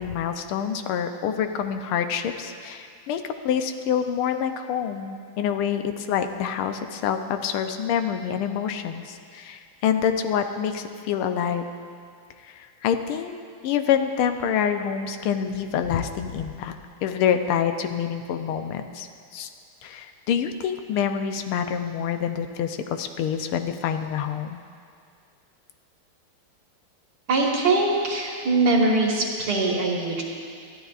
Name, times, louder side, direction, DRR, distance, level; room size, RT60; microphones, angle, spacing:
voice 1, 0.0-11.6 12.5-13.4 13.6-19.1 19.3-19.5 19.8-24.6, left 8 dB, 90° left, 7 dB, 1.6 m, -26 dB
voice 2, 27.3-30.2, right 3 dB, 50° right, -2 dB, 2.1 m, -22 dB
22.0 x 13.0 x 2.4 m, 2.3 s
omnidirectional pair, 2.3 m